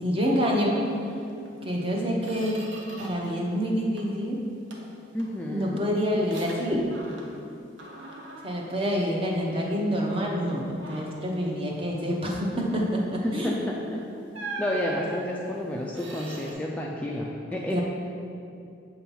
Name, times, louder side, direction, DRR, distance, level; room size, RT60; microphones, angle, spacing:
voice 1, 0.0-0.9 1.6-2.7 3.0-4.4 5.5-6.9 8.4-13.6 17.7-17.8, equal, 30° right, -1 dB, 0.8 m, -27 dB
Squeak, 1.4-1.6 1.9-3.4 3.7-4.3 4.7-7.5 7.8-9.6 10.0-10.3 10.7-11.3 13.4-13.6 14.3-16.5, right 2 dB, 90° right, 0.8 m, -42 dB
voice 2, 5.1-5.8 13.2-13.8 14.2-14.3 14.6-17.8, left 1 dB, 10° left, -3 dB, 0.3 m, -30 dB
6.8 x 2.9 x 5.5 m, 2.5 s
head